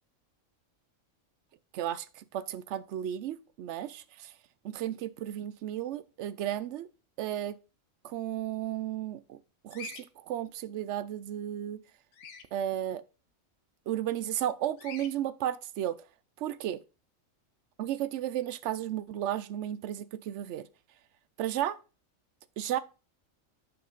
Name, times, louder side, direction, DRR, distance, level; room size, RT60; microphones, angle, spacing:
voice 1, 1.7-4.3 4.6-6.9 7.2-7.6 8.0-9.4 9.6-11.8 12.5-13.0 13.9-16.0 16.4-16.8 17.8-20.7 21.4-21.8 22.6-22.8, right 11 dB, 65° right, 0.8 m, -34 dB
Bird vocalization bird call bird song, 9.7-10.0 12.1-12.5 14.8-15.1, left 5 dB, 80° left, 1.3 m, -44 dB
6.0 x 5.7 x 3.9 m
omnidirectional pair, 1.4 m